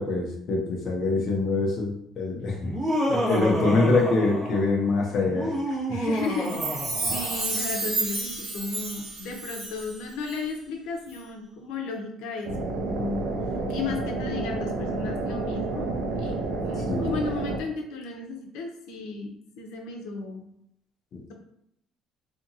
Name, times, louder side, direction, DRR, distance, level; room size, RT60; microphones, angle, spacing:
voice 1, 0.0-2.7 3.1-5.8 7.0-7.1 16.9-17.2 21.1-21.3, left 3 dB, 40° left, -1 dB, 0.6 m, -25 dB
Laughter, 2.6-4.8 5.2-7.6, equal, 30° right, 1.0 m, -29 dB
voice 2, 5.9-13.3 13.7-20.5, left 4 dB, 90° left, 2 dB, 0.6 m, -35 dB
Chime, 6.3-10.0 10.3-10.4, right 3 dB, 50° right, 1.4 m, -31 dB
sound 1, 12.4-17.6, right 2 dB, 70° right, 0.5 m, -30 dB
2.8 x 2.5 x 2.7 m, 0.74 s
cardioid pair, 165°, 0 cm